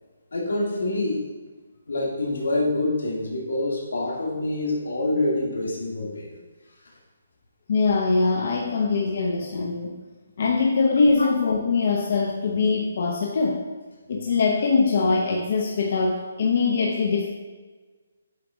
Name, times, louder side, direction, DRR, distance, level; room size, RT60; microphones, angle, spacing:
voice 1, 0.3-1.3 1.9-6.4, left 2 dB, 85° left, -3 dB, 1.9 m, -26 dB
voice 2, 7.7-10.0 10.4-13.6 14.1-17.3, left 4 dB, 50° left, 0 dB, 0.6 m, -22 dB
8.0 x 4.0 x 3.3 m, 1.3 s
hypercardioid pair, 165°, 0 cm